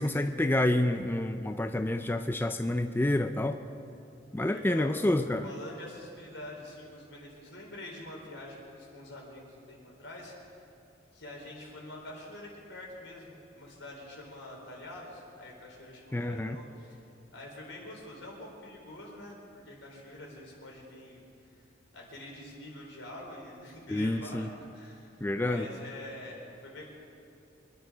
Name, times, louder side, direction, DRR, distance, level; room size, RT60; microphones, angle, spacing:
voice 1, 0.0-3.6 4.3-5.5 16.1-16.6 23.9-24.5 25.2-25.7, left 1 dB, 10° left, 7 dB, 0.4 m, -28 dB
voice 2, 4.5-5.0 5.4-10.6 11.1-17.0 17.3-21.2 21.5-21.6 21.9-26.8, left 1 dB, 80° left, -1 dB, 4.2 m, -46 dB
25.0 x 10.5 x 5.0 m, 2.6 s
head